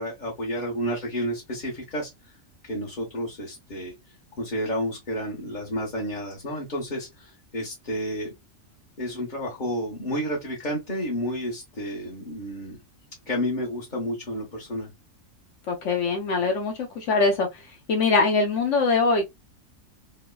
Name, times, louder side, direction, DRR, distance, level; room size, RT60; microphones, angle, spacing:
voice 1, 0.0-2.1 2.6-3.9 4.4-8.3 9.0-12.8 13.3-14.9, equal, 40° left, 1.0 m, -30 dB
voice 2, 15.7-17.5 17.9-19.3, left 3 dB, 65° left, 0.9 m, -22 dB
3.0 x 2.1 x 2.2 m
omnidirectional pair, 1.4 m